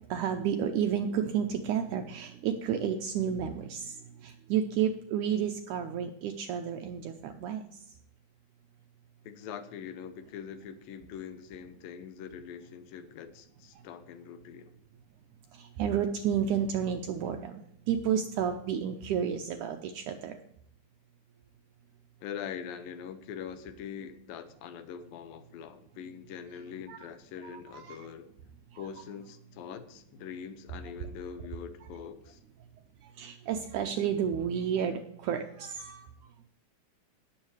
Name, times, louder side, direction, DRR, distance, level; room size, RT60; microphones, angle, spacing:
voice 1, 0.1-4.0 4.2-7.6 15.5-17.6 17.9-20.4 26.9-27.0 27.7-28.1 28.7-28.8 33.2-36.1, right 8 dB, 85° right, 6 dB, 1.8 m, -31 dB
voice 2, 9.2-14.7 22.2-28.3 28.8-32.4, left 8 dB, 80° left, 10 dB, 2.5 m, -43 dB
19.0 x 7.3 x 3.2 m, 0.71 s
omnidirectional pair, 4.2 m